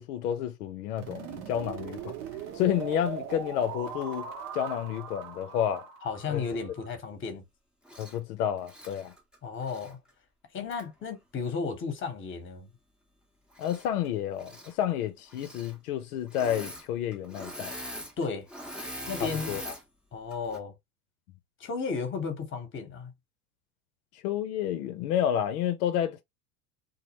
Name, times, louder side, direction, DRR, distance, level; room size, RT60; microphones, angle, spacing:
voice 1, 0.0-2.1 2.5-5.9 6.3-6.4 8.0-9.1 13.6-17.7 19.2-19.7 24.2-26.2, left 10 dB, 80° left, 0.6 m, -30 dB
sound 1, 1.0-6.9, right 7 dB, 70° right, 1.0 m, -40 dB
voice 2, 6.0-7.4 9.4-10.0 10.5-12.7 18.2-18.5 19.1-19.6 20.1-20.7 21.6-23.1, left 5 dB, 25° left, 0.9 m, -34 dB
Engine / Mechanisms, 7.8-8.2 8.6-9.9 10.7-10.8 13.5-14.1 14.3-14.7 15.3-15.7 16.3-16.9 17.1-19.8 20.3-20.6, equal, ahead, 0.6 m, -42 dB
2.4 x 2.0 x 2.9 m
hypercardioid pair, 95°, 44 cm